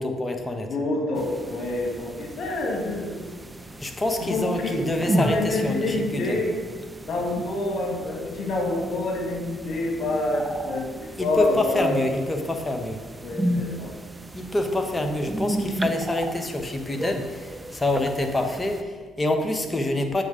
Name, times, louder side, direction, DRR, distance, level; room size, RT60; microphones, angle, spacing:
voice 1, 0.0-0.7 3.8-6.4 11.2-13.0 14.3-20.2, left 1 dB, 20° left, 4 dB, 1.1 m, -26 dB
voice 2, 0.6-3.2 4.2-4.7 4.9-6.5 7.0-12.0 13.2-14.0, left 2 dB, 55° left, -1 dB, 1.9 m, -27 dB
sound 1, 1.2-18.8, right 1 dB, 15° right, 0.5 m, -34 dB
7.8 x 4.8 x 5.2 m, 1.5 s
hypercardioid pair, 50°, 0 cm